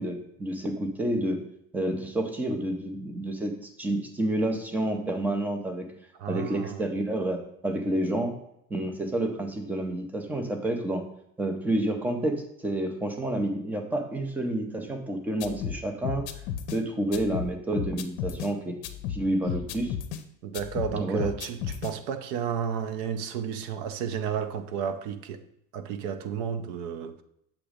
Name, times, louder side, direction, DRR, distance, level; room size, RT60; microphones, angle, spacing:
voice 1, 0.0-1.4 1.7-3.5 3.8-5.8 6.3-8.3 8.7-11.0 11.4-16.2 16.7-18.7 19.1-19.9 20.9-21.3, right 1 dB, 5° right, 0.4 m, -29 dB
voice 2, 6.2-6.8 20.4-25.4 25.7-27.2, right 7 dB, 55° right, 0.5 m, -32 dB
sound 1, 15.4-16.8 17.1-18.5 18.8-20.2 20.5-21.9, left 9 dB, 60° left, 0.6 m, -34 dB
7.2 x 3.0 x 4.9 m
cardioid pair, 175°, 29 cm